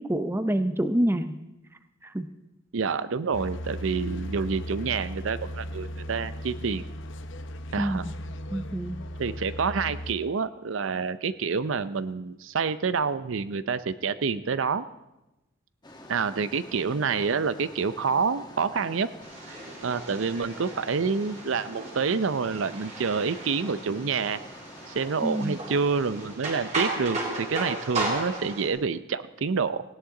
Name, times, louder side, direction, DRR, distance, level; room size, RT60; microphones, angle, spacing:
voice 1, 0.0-1.4 2.0-2.3 7.8-8.1 8.5-9.0 25.2-25.6, right 1 dB, 10° right, 10 dB, 0.5 m, -27 dB
voice 2, 2.7-6.9 7.7-8.1 9.2-14.9 16.1-19.1 19.8-24.4 24.9-29.8, right 5 dB, 70° right, 14 dB, 0.5 m, -28 dB
sound 1, 3.3-10.1, equal, 65° left, 0.8 m, -37 dB
sound 2, 15.8-26.4, left 1 dB, 20° left, 1.9 m, -47 dB
sound 3, 19.2-28.7, right 2 dB, 35° right, 3.1 m, -35 dB
18.5 x 17.0 x 3.8 m, 0.98 s
head